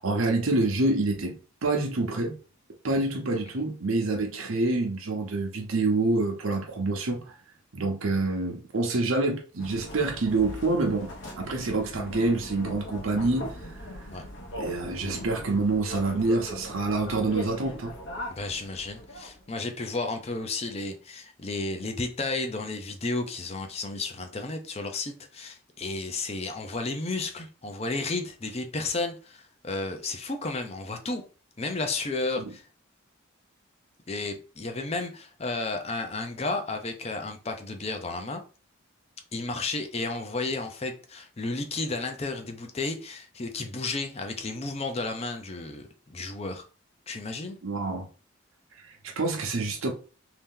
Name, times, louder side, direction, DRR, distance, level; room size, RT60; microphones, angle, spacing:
voice 1, 0.0-2.4 2.8-7.4 7.7-13.8 14.6-17.9 32.4-32.5 47.6-48.1 48.8-49.9, right 2 dB, 75° right, 0.8 m, -27 dB
sound 1, 9.6-19.4, equal, 60° left, 0.8 m, -39 dB
voice 2, 18.3-31.2 31.6-32.7 34.1-38.4 39.3-46.6 47.1-47.6, left 3 dB, 30° left, 0.5 m, -32 dB
3.2 x 2.8 x 3.7 m
head